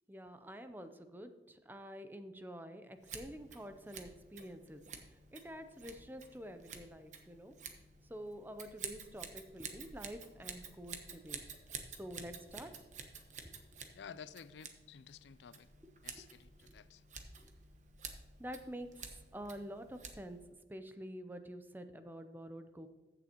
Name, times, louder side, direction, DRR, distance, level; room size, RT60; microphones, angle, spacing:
voice 1, 0.1-4.8 5.3-7.5 8.1-11.4 11.9-12.7 13.4-13.5 16.1-16.2 16.7-16.8 17.4-17.5 18.4-18.9 19.3-20.4 20.7-22.9, equal, 10° right, 0.5 m, -48 dB
Scissors, 3.0-20.5, right 6 dB, 45° right, 1.0 m, -51 dB
voice 2, 13.9-15.7 16.0-17.0, left 7 dB, 85° left, 0.4 m, -53 dB
14.5 x 6.9 x 2.9 m
head